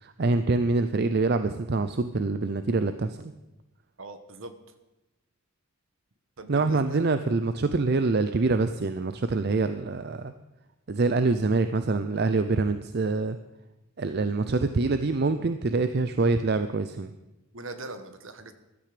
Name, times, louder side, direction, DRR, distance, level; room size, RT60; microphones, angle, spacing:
voice 1, 0.0-3.3 6.5-10.3 10.9-13.4 14.0-17.1, right 3 dB, 50° right, 10 dB, 0.5 m, -25 dB
voice 2, 4.0-4.5 6.4-7.1 17.5-18.5, right 2 dB, 65° right, 9 dB, 1.3 m, -41 dB
14.5 x 12.0 x 5.1 m, 1.0 s
head